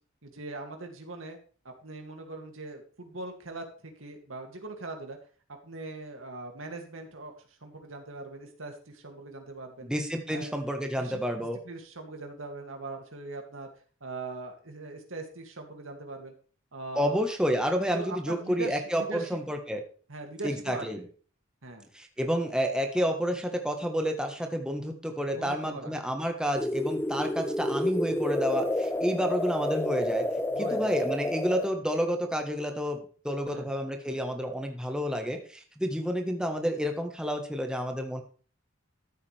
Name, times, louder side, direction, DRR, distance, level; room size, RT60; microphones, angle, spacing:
voice 1, 0.2-1.4 1.6-5.2 5.6-9.9 10.3-13.7 14.0-16.3 16.7-17.2 17.9-19.4 20.1-21.1 21.6-21.9 25.3-25.9 30.5-31.0 33.5-33.7, right 3 dB, 90° right, 3 dB, 2.5 m, -41 dB
voice 2, 9.8-11.6 16.9-19.8 20.4-21.0 21.9-30.3 30.6-33.0 33.2-38.2, equal, 5° right, 4 dB, 1.4 m, -30 dB
sound 1, 26.5-31.7, left 1 dB, 10° left, 0.5 m, -30 dB
13.5 x 8.5 x 3.4 m, 0.39 s
head